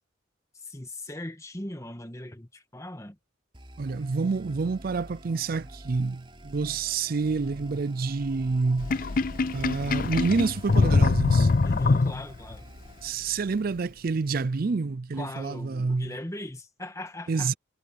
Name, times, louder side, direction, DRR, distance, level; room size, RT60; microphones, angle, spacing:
voice 1, 0.5-3.2 11.6-12.7 15.1-17.5, left 1 dB, 15° left, 1.6 m, -39 dB
sound 1, 3.5-13.1, right 1 dB, 25° right, 4.0 m, -48 dB
voice 2, 3.8-9.0 9.5-11.5 13.0-16.1 17.3-17.5, right 4 dB, 50° right, 0.4 m, -28 dB
Sink (filling or washing), 8.8-12.5, left 3 dB, 45° left, 0.5 m, -23 dB
head